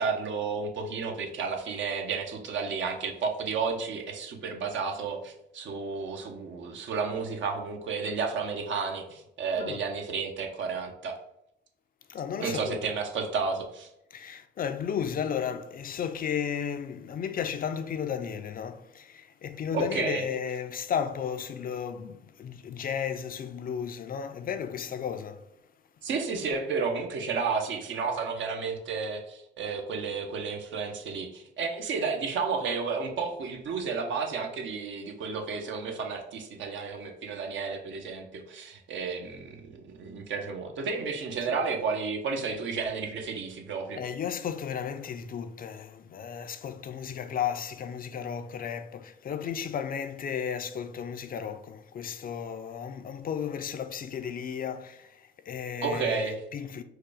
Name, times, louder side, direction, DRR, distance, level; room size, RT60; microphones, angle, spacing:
voice 1, 0.0-11.1 12.4-13.9 19.7-20.2 26.0-44.0 55.8-56.4, right 5 dB, 70° right, 0.9 m, -32 dB
voice 2, 12.1-12.8 14.1-25.4 41.5-41.6 43.9-56.8, left 8 dB, 45° left, 0.4 m, -34 dB
4.7 x 2.3 x 4.8 m
cardioid pair, 90°, 20 cm